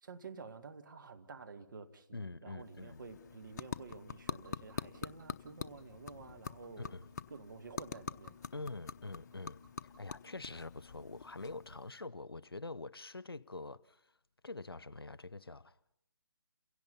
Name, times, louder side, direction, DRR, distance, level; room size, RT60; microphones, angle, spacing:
voice 1, 0.0-7.0 7.3-8.5, right 4 dB, 60° right, 2.0 m, -51 dB
voice 2, 2.1-3.0 6.8-7.0 8.5-14.0 14.4-16.0, left 3 dB, 85° left, 0.8 m, -45 dB
sound 1, 2.6-12.0, left 6 dB, 45° left, 0.9 m, -46 dB
29.5 x 17.0 x 5.6 m
figure-of-eight pair, 140°, 12 cm